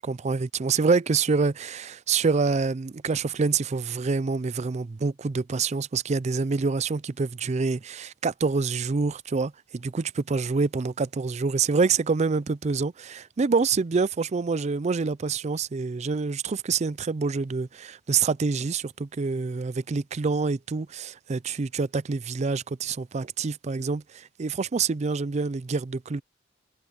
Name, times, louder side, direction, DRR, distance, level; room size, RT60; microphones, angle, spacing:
voice 1, 0.0-26.2, right 4 dB, 35° right, 0.4 m, -26 dB
head